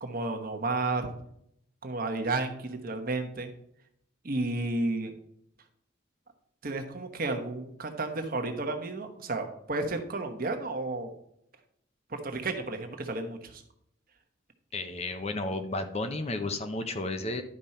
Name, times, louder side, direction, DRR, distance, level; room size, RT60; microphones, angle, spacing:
voice 1, 0.0-1.1 1.8-3.5 4.2-5.1 6.6-11.1 12.1-13.6, right 2 dB, 45° right, 5 dB, 1.1 m, -32 dB
voice 2, 14.7-17.4, left 2 dB, 30° left, 7 dB, 0.7 m, -32 dB
11.0 x 5.3 x 4.3 m, 0.74 s
head